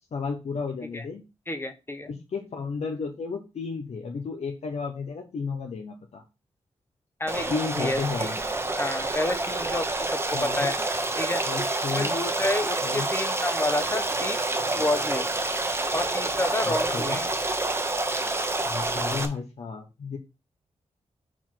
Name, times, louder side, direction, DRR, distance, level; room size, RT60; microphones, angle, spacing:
voice 1, 0.1-1.2 2.1-6.2 7.5-8.4 10.3-10.7 11.4-12.2 12.8-13.1 16.7-17.2 18.7-20.2, left 5 dB, 65° left, 3 dB, 1.0 m, -33 dB
voice 2, 1.5-2.1 7.2-8.3 8.8-10.8 11.2-11.4 11.9-14.4 14.8-15.3 15.9-17.3, left 1 dB, 20° left, 8 dB, 0.9 m, -30 dB
Stream, 7.3-19.2, right 2 dB, 20° right, 1.0 m, -28 dB
4.6 x 4.5 x 5.9 m, 0.27 s
wide cardioid pair, 110°, 12 cm